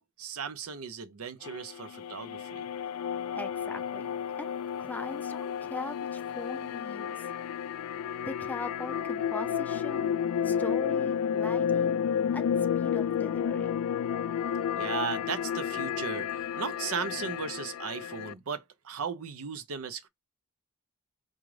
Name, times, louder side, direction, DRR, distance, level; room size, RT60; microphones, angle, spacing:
voice 1, 0.0-2.7 14.7-20.1, right 6 dB, 75° right, 0.6 m, -36 dB
sound 1, 1.4-18.3, left 8 dB, 90° left, 0.3 m, -31 dB
voice 2, 3.3-4.1 4.4-4.5 4.8-7.3 8.2-10.1 10.4-12.0 12.3-12.5 12.7-13.8, left 2 dB, 5° left, 0.3 m, -40 dB
4.9 x 2.3 x 3.1 m
head